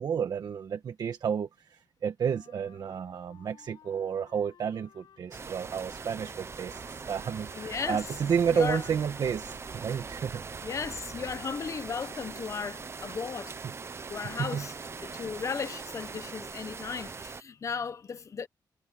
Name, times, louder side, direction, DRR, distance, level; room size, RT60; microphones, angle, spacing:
voice 1, 0.0-10.4 13.6-13.7 14.4-14.7, right 7 dB, 65° right, 1.5 m, -31 dB
Wind instrument woodwind instrument, 2.2-10.3, left 9 dB, 80° left, 7.8 m, -58 dB
sound 1, 5.3-17.4, right 5 dB, 35° right, 0.9 m, -41 dB
voice 2, 7.5-8.0 8.5-8.8 10.6-13.5 14.1-14.7 15.0-18.5, left 6 dB, 45° left, 1.1 m, -35 dB
wide cardioid pair, 120°, 8 cm